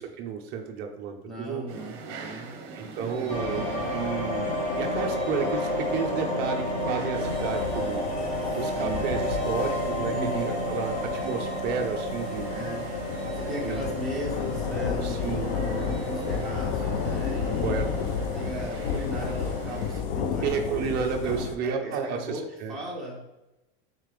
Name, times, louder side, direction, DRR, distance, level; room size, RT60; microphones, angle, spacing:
voice 1, 0.0-1.6 2.8-4.5 4.8-8.0 8.6-12.5 13.6-13.8 15.0-15.5 17.6-17.9 20.4-22.8, right 6 dB, 30° right, 3 dB, 0.5 m, -32 dB
voice 2, 1.2-3.9 8.7-9.0 10.1-10.6 12.5-12.9 13.3-17.8 18.3-23.4, right 1 dB, ahead, -6 dB, 1.1 m, -37 dB
sound 1, 1.7-20.0, right 4 dB, 50° right, 0.8 m, -42 dB
sound 2, 3.3-20.0, left 1 dB, 20° left, 1.0 m, -31 dB
sound 3, 7.2-21.6, left 7 dB, 60° left, 0.5 m, -33 dB
3.7 x 3.3 x 3.1 m, 0.96 s
supercardioid pair, 130°, 32 cm